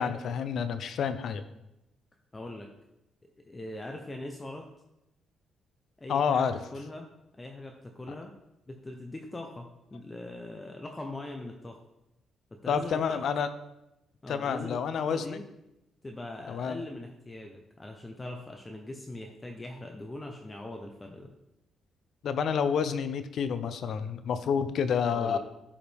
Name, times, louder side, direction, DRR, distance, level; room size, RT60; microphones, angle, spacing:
voice 1, 0.0-1.4 6.1-6.6 12.7-13.5 14.3-15.4 16.5-16.8 22.2-25.4, left 7 dB, 65° left, 11 dB, 0.6 m, -29 dB
voice 2, 2.3-2.7 3.4-4.7 6.0-7.1 7.4-8.3 8.7-11.8 12.5-13.4 14.2-15.4 16.0-21.3 25.1-25.4, left 2 dB, 20° left, 3 dB, 0.8 m, -41 dB
12.0 x 5.0 x 3.5 m, 0.90 s
cardioid pair, 90°, 0 cm